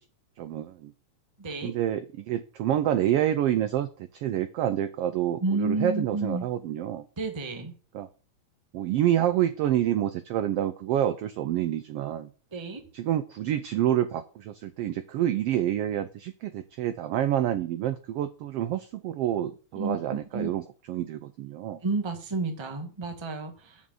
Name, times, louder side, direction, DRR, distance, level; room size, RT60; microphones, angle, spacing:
voice 1, 0.4-0.9 1.6-7.0 7.9-8.1 8.7-12.3 12.9-21.8, right 11 dB, 80° right, 11 dB, 1.3 m, -28 dB
voice 2, 1.4-1.7 5.4-6.4 7.2-7.7 12.5-12.8 19.7-20.5 21.8-23.8, right 3 dB, 20° right, 5 dB, 0.8 m, -31 dB
7.2 x 6.3 x 7.7 m, 0.38 s
omnidirectional pair, 3.3 m